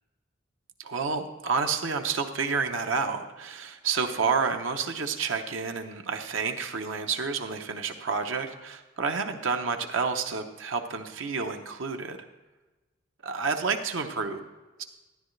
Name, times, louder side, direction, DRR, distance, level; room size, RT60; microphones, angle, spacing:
voice 1, 0.8-12.2 13.2-14.4 14.8-14.9, right 5 dB, 80° right, 5 dB, 0.8 m, -29 dB
12.5 x 10.5 x 3.2 m, 1.2 s
head